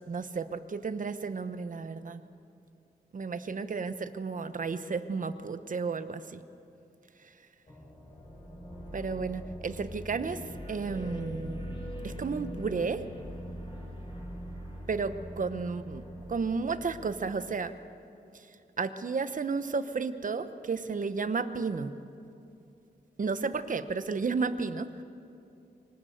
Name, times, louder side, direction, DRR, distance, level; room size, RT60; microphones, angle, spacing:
voice 1, 0.1-2.2 3.1-6.4 8.9-10.4 10.7-11.7 12.0-13.0 14.9-17.7 18.8-21.9 23.2-25.0, right 4 dB, 50° right, 11 dB, 1.0 m, -32 dB
sound 1, 7.7-17.9, equal, 30° left, 6.3 m, -42 dB
24.5 x 19.0 x 8.0 m, 2.6 s
wide cardioid pair, 120°, 17 cm